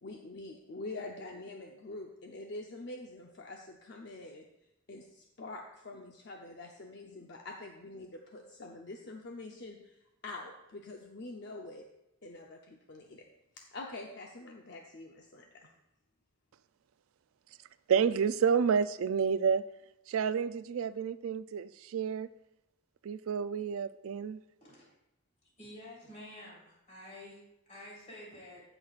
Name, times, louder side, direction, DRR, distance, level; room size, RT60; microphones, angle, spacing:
voice 1, 0.0-4.4 4.9-11.9 12.2-13.2 13.5-15.7, left 2 dB, 55° left, 1 dB, 0.7 m, -45 dB
voice 2, 17.9-19.6 20.1-22.3 23.0-24.4, right 6 dB, 80° right, 15 dB, 0.3 m, -29 dB
voice 3, 25.6-28.6, left 1 dB, 35° left, -6 dB, 3.5 m, -49 dB
16.0 x 5.9 x 2.4 m, 0.88 s
head